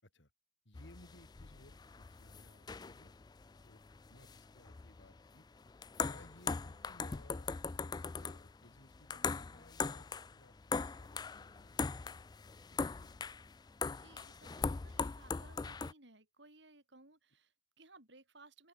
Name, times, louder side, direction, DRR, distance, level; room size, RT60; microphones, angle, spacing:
voice 1, 0.6-3.1 3.5-3.8 4.1-5.4 6.0-13.4, left 1 dB, 80° left, 5.9 m, -62 dB
sound 1, 0.7-15.9, left 5 dB, 20° left, 0.3 m, -41 dB
voice 2, 13.8-18.7, right 2 dB, 70° right, 7.3 m, -61 dB
open air
head